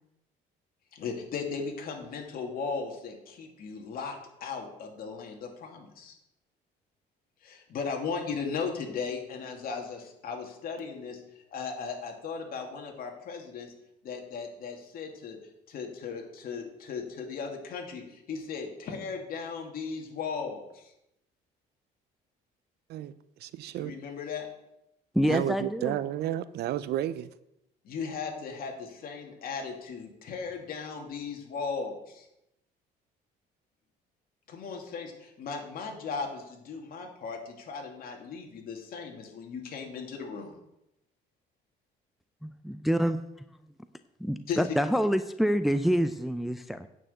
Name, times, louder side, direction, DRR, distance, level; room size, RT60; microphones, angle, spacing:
voice 1, 0.9-6.1 7.4-11.2 11.5-13.7 14.0-15.4 15.7-20.9 23.8-24.5 27.8-32.3 34.5-40.5 44.5-44.6, left 5 dB, 60° left, 2 dB, 2.7 m, -37 dB
voice 2, 22.9-23.9 25.3-27.3, right 12 dB, 75° right, 16 dB, 0.6 m, -32 dB
voice 3, 25.1-26.0 42.4-43.2 44.2-46.9, equal, ahead, 10 dB, 0.5 m, -27 dB
9.1 x 6.2 x 7.8 m, 0.83 s
cardioid pair, 110°, 17 cm